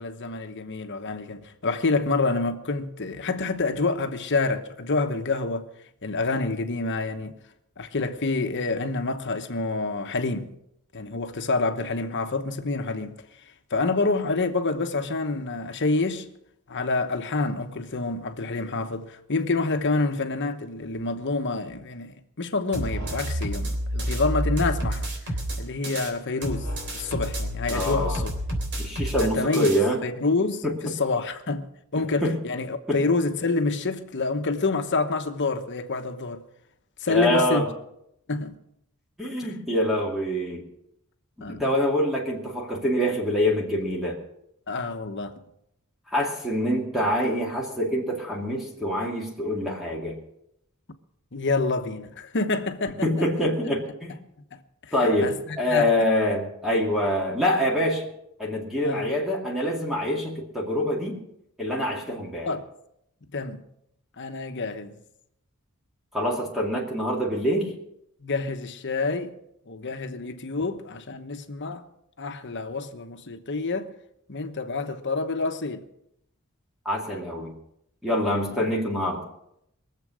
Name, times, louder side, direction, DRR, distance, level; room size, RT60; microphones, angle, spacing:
voice 1, 0.0-5.7 6.0-7.3 7.8-10.5 10.9-13.2 13.7-16.3 16.7-28.3 29.2-29.7 30.0-36.4 37.0-37.7 38.3-38.5 39.4-39.5 41.4-41.7 44.7-45.4 51.3-53.2 54.5-55.9 58.8-59.1 62.5-62.6 63.3-63.6 64.2-64.9 68.2-69.3 69.7-71.9 72.2-73.9 74.3-75.8 78.5-78.6, left 3 dB, 55° left, 1.1 m, -28 dB
sound 1, 22.7-26.1 26.4-29.8, equal, 55° right, 3.4 m, -29 dB
voice 2, 27.7-28.2 28.8-30.0 30.6-30.7 32.2-32.4 32.9-33.0 37.1-37.6 39.2-40.6 41.4-44.2 46.1-50.2 53.0-54.2 54.9-58.1 58.4-61.2 61.6-62.5 66.1-67.7 76.8-77.5 78.0-79.2, equal, ahead, 2.4 m, -25 dB
22.5 x 7.7 x 6.3 m
head